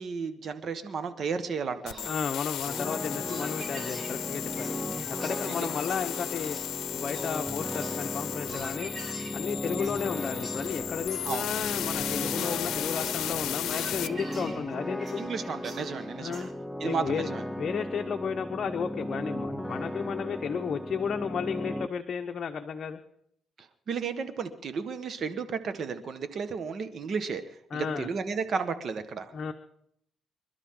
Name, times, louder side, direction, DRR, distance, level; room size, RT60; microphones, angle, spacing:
voice 1, 0.0-2.2 5.5-5.7 11.2-11.5 15.2-16.5 16.8-17.4 23.6-27.4 27.7-29.3, right 5 dB, 55° right, 10 dB, 1.6 m, -33 dB
sound 1, 1.9-14.1, left 12 dB, 80° left, 0.7 m, -35 dB
sound 2, 1.9-16.5, right 2 dB, 35° right, 3.0 m, -47 dB
voice 2, 2.0-4.7 5.2-6.6 6.9-8.9 9.3-15.2 16.2-16.5 16.8-23.0 27.7-28.1 29.3-29.5, left 6 dB, 50° left, 6 dB, 0.9 m, -33 dB
sound 3, 2.7-21.9, left 1 dB, ahead, 0.7 m, -36 dB
26.0 x 12.5 x 3.9 m, 0.74 s
cardioid pair, 90°, 0 cm